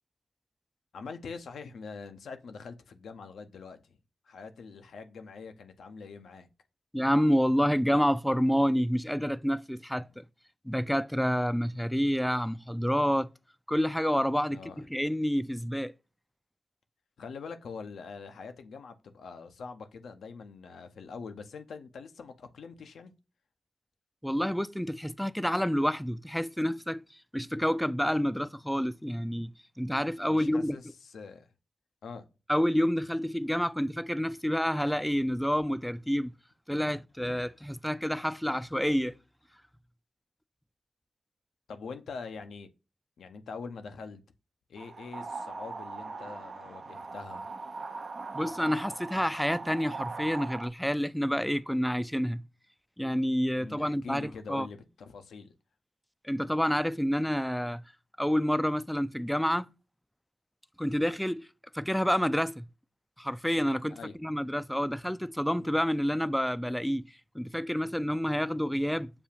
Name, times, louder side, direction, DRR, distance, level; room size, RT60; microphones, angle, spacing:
voice 1, 0.9-4.0 4.2-6.5 14.5-14.8 17.2-23.1 30.3-31.5 32.0-32.3 41.7-42.7 43.2-44.2 44.7-47.5 53.6-55.5 63.9-64.1, left 5 dB, 80° left, 0.6 m, -44 dB
voice 2, 6.9-10.2 10.6-13.3 13.7-15.9 24.2-27.0 27.3-29.5 29.8-30.8 32.5-36.3 36.7-39.2 48.3-52.4 53.0-54.7 56.2-57.8 58.2-59.7 60.8-61.5 61.7-62.6 63.2-69.1, equal, 5° left, 0.3 m, -28 dB
sound 1, 44.8-50.7, right 4 dB, 60° right, 0.5 m, -40 dB
6.8 x 2.4 x 2.7 m
supercardioid pair, 45°, 0 cm